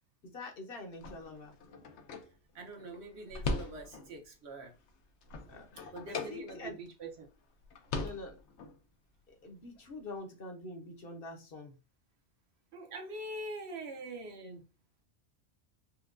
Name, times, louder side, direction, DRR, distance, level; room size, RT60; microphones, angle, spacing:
voice 1, 0.2-1.5 5.5-5.9 6.3-6.8 7.9-8.4 9.3-11.7, left 2 dB, 60° left, 1.0 m, -45 dB
sound 1, 0.9-4.2 4.7-6.9 7.2-7.3 7.6-8.8, left 3 dB, 80° left, 0.9 m, -40 dB
voice 2, 2.5-4.7 5.9-7.3 12.7-14.6, right 2 dB, 65° right, 1.1 m, -44 dB
4.3 x 2.2 x 2.4 m
omnidirectional pair, 1.2 m